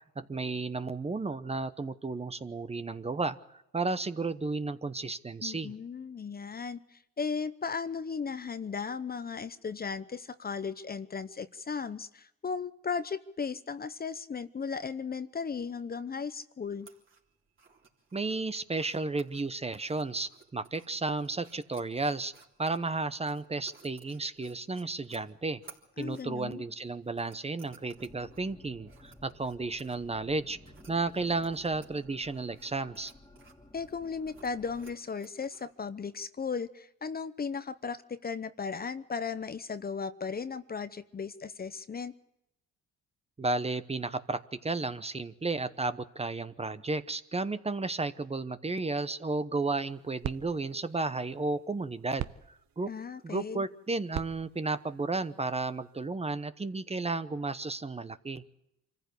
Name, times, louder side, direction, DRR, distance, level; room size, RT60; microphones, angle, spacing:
voice 1, 0.2-5.7 18.1-22.3 22.6-25.6 26.0-30.6 30.9-33.1 43.4-52.3 52.8-52.9 53.2-58.4, right 3 dB, 20° right, 12 dB, 0.9 m, -33 dB
voice 2, 5.4-16.9 26.0-26.6 33.7-42.1 52.9-53.6, left 5 dB, 30° left, 13 dB, 0.8 m, -36 dB
sound 1, 16.7-35.7, right 5 dB, 40° right, 3.6 m, -60 dB
sound 2, 27.9-34.9, left 1 dB, 10° left, 1.9 m, -55 dB
sound 3, 49.7-56.1, right 12 dB, 65° right, 0.9 m, -45 dB
25.5 x 15.0 x 8.3 m, 0.86 s
cardioid pair, 90°, 30 cm